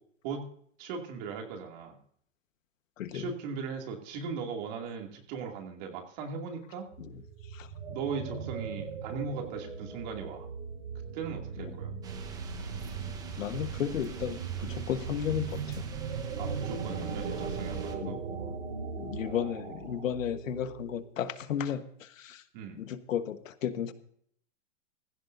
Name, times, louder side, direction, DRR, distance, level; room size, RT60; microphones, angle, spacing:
voice 1, 0.8-2.0 3.1-6.9 7.9-10.5 11.1-11.9 16.4-18.2 19.2-19.5 22.5-22.8, right 5 dB, 35° right, 2 dB, 2.6 m, -38 dB
voice 2, 3.0-3.3 7.0-7.7 11.6-11.8 13.4-15.9 17.8-18.2 18.9-22.4 22.8-23.9, left 9 dB, 85° left, 10 dB, 1.4 m, -34 dB
sound 1, 6.9-21.1, right 6 dB, 75° right, 5.4 m, -38 dB
sound 2, 12.0-18.0, right 4 dB, 10° right, 0.9 m, -45 dB
16.0 x 15.5 x 2.7 m, 0.63 s
supercardioid pair, 170°, 38 cm